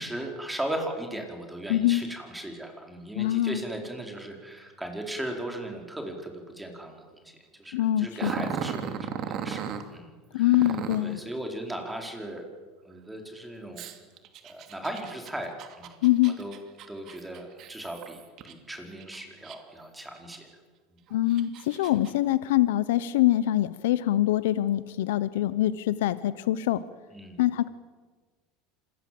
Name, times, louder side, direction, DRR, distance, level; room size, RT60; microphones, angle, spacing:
voice 1, 0.0-10.8 11.0-12.5 12.8-13.8 14.4-15.9 16.4-16.6 16.9-20.5 27.1-27.4, right 1 dB, 5° right, 3 dB, 4.6 m, -37 dB
voice 2, 1.7-2.0 3.2-3.6 7.7-8.5 10.3-11.2 16.0-16.3 21.1-26.8 27.4-27.7, left 14 dB, 85° left, 15 dB, 0.8 m, -24 dB
Growling, 8.2-9.9 10.5-11.1 13.8-18.5 19.0-19.8 20.3-20.4 21.1-22.1, right 8 dB, 50° right, 2.7 m, -36 dB
27.0 x 21.5 x 7.8 m, 1.4 s
supercardioid pair, 120°, 0 cm